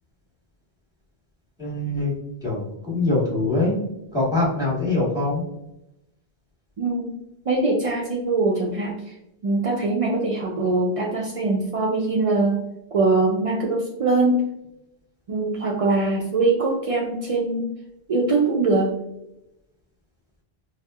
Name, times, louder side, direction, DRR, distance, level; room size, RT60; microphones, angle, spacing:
voice 1, 1.6-2.1 2.4-3.8 4.1-5.4, left 2 dB, 5° right, -5 dB, 1.3 m, -23 dB
voice 2, 6.8-7.1 7.5-8.9 9.4-12.6 12.9-14.4 15.3-17.7 18.1-18.9, right 3 dB, 55° right, -1 dB, 0.4 m, -22 dB
4.1 x 2.1 x 2.3 m, 0.86 s
omnidirectional pair, 1.1 m